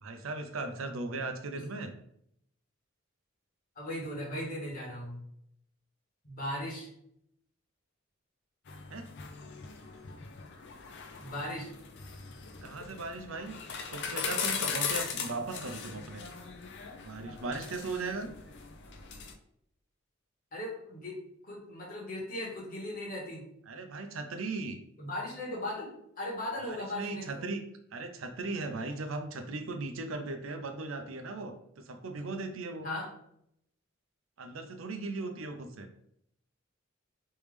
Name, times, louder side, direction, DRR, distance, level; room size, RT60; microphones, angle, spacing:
voice 1, 0.0-1.9 8.9-9.1 12.6-13.5 13.9-16.2 17.0-18.3 23.7-24.8 26.7-27.6 27.9-32.9 34.4-35.9, right 3 dB, 80° right, 6 dB, 0.6 m, -38 dB
voice 2, 3.7-5.2 6.2-6.9 11.2-11.7 20.5-23.4 25.0-25.9 26.2-27.4 32.8-33.1, left 1 dB, 45° left, -4 dB, 1.5 m, -38 dB
sound 1, 8.7-19.3, left 6 dB, 60° left, 0.5 m, -39 dB
3.4 x 3.1 x 3.3 m, 0.71 s
head